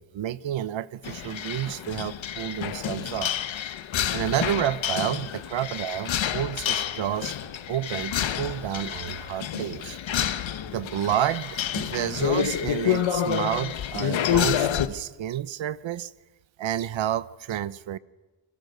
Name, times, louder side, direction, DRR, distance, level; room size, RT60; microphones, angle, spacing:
voice 1, 0.0-3.4 4.1-7.4 7.7-10.0 10.7-16.1 16.6-18.0, right 11 dB, 90° right, 0.9 m, -30 dB
sound 1, 1.0-14.9, left 10 dB, 90° left, 1.3 m, -29 dB
30.0 x 23.5 x 6.8 m
wide cardioid pair, 145°, 45 cm